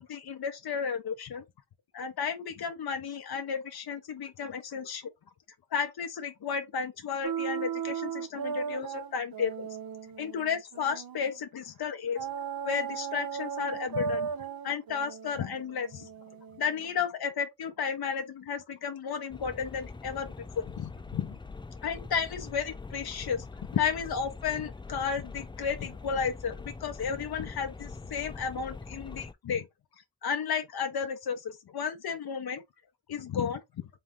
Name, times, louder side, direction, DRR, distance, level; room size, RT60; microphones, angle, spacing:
voice 1, 0.0-1.4 1.9-5.0 5.7-9.7 10.2-12.2 12.6-14.3 14.6-16.1 16.6-21.4 21.8-23.5 23.7-29.7 30.2-32.6 33.1-33.6, left 6 dB, 90° left, 0.7 m, -33 dB
sound 1, 7.2-11.4 12.2-16.9, right 7 dB, 75° right, 0.6 m, -36 dB
sound 2, 19.3-29.3, left 4 dB, 15° left, 0.3 m, -43 dB
3.4 x 3.1 x 3.6 m
cardioid pair, 50°, 36 cm